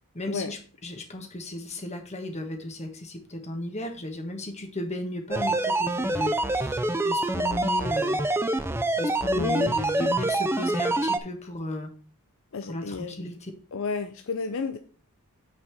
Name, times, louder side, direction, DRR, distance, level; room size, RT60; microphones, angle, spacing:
voice 1, 0.1-8.2 9.0-11.9 12.7-13.5, left 1 dB, 30° left, 4 dB, 1.3 m, -35 dB
sound 1, 5.3-11.2, right 2 dB, 10° right, 0.4 m, -26 dB
voice 2, 9.3-9.7 12.5-13.3 13.7-14.8, left 5 dB, 60° left, 8 dB, 0.5 m, -31 dB
6.1 x 4.1 x 6.1 m, 0.40 s
head